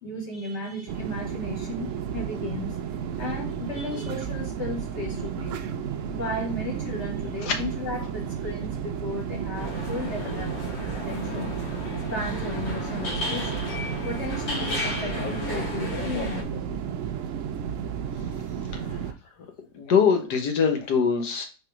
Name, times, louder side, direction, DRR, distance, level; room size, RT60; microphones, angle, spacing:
voice 1, 0.0-2.8 3.2-5.6 6.1-10.5 10.9-11.6 12.1-13.7 14.0-16.8, left 1 dB, 35° left, -1 dB, 2.2 m, -35 dB
sound 1, 0.9-19.1, right 8 dB, 75° right, 0.7 m, -32 dB
sound 2, 9.5-16.4, left 2 dB, 80° left, 2.8 m, -33 dB
voice 2, 18.7-19.0 19.7-21.5, left 6 dB, 65° left, 5 dB, 1.6 m, -23 dB
4.6 x 4.4 x 4.8 m, 0.35 s
omnidirectional pair, 2.0 m